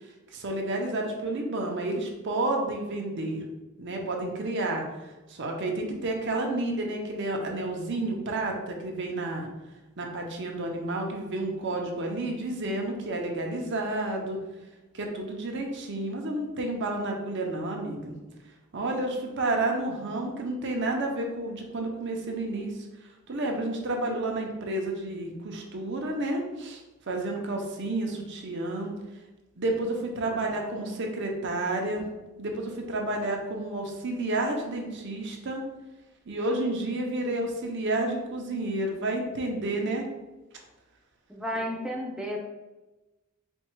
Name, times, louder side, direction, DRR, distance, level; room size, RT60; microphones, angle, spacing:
voice 1, 0.3-3.4 3.8-4.8 5.3-9.5 10.0-14.4 14.9-18.1 18.7-22.7 23.3-28.9 29.6-32.0 32.4-35.6 36.3-40.0, right 2 dB, 60° right, 1 dB, 0.7 m, -30 dB
voice 2, 6.1-6.9 30.3-31.0 41.3-42.4, equal, 5° right, -1 dB, 0.4 m, -35 dB
4.4 x 2.4 x 4.4 m, 1.1 s
head